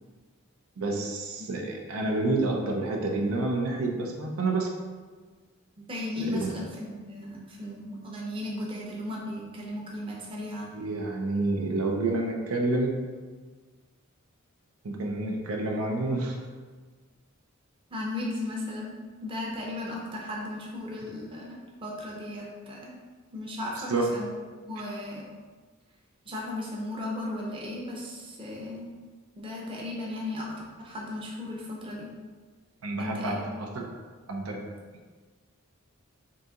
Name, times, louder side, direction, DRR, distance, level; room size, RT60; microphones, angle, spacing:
voice 1, 0.8-4.7 6.2-6.5 10.7-12.9 14.8-16.4 23.9-24.1 32.8-33.8 34.3-34.6, right 2 dB, 85° right, 1 dB, 0.6 m, -29 dB
voice 2, 5.8-10.7 17.9-18.9 19.2-23.0 23.3-24.3 24.7-25.3 26.2-28.9 29.3-32.1 33.0-33.6, left 1 dB, 25° right, -3 dB, 0.7 m, -36 dB
3.9 x 2.7 x 3.6 m, 1.5 s
head